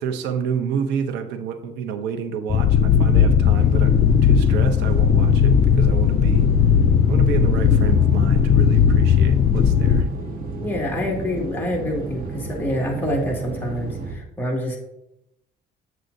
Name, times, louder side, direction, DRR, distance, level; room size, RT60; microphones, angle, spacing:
voice 1, 0.0-6.5 7.1-10.1, right 7 dB, 90° right, 8 dB, 0.8 m, -29 dB
sound 1, 2.5-10.0, left 7 dB, 40° left, 0.4 m, -17 dB
sound 2, 3.6-14.1, right 3 dB, 55° right, 1.5 m, -32 dB
voice 2, 10.6-14.8, left 1 dB, 10° left, -2 dB, 2.1 m, -26 dB
7.7 x 7.6 x 2.7 m, 0.85 s
cardioid pair, 110°, 17 cm